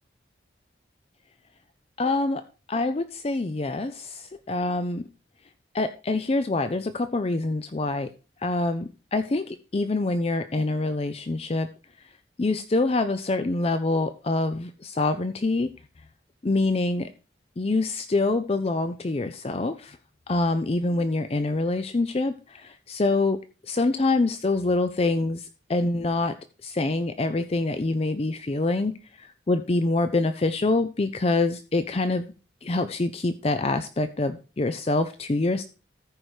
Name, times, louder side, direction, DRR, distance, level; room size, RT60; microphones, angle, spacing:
voice 1, 2.0-2.4 2.7-5.0 5.7-8.1 8.4-11.7 12.4-15.7 16.4-17.1 17.6-20.0 20.3-23.4 23.7-26.3 26.6-28.9 29.2-32.3 32.6-35.6, left 2 dB, 35° left, 10 dB, 0.5 m, -25 dB
14.0 x 4.8 x 4.8 m, 0.34 s
head